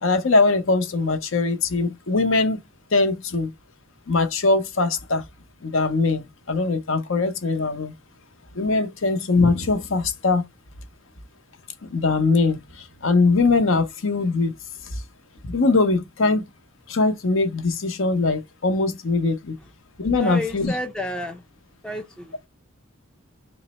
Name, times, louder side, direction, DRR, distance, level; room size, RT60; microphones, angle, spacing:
voice 1, 0.0-2.6 2.9-3.5 4.1-5.2 5.6-7.9 8.5-10.5 11.8-14.5 14.9-15.0 15.4-16.5 16.9-19.5 20.0-20.7, left 3 dB, 65° left, 0.7 m, -21 dB
voice 2, 20.2-21.4 21.8-22.3, equal, 5° left, 0.4 m, -31 dB
3.8 x 2.1 x 4.0 m
head